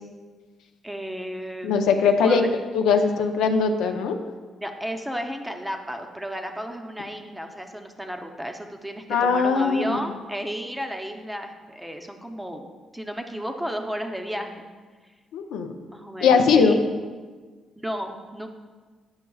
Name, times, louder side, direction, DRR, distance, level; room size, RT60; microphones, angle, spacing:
voice 1, 0.8-2.5 4.6-12.7 12.9-14.7 15.9-16.8 17.8-18.5, equal, 5° right, 4 dB, 0.7 m, -33 dB
voice 2, 1.6-2.4 2.7-4.2 9.1-10.0 15.3-15.7 16.2-16.8, left 5 dB, 90° left, 5 dB, 0.5 m, -20 dB
9.5 x 5.6 x 2.3 m, 1.4 s
cardioid pair, 90°, 0 cm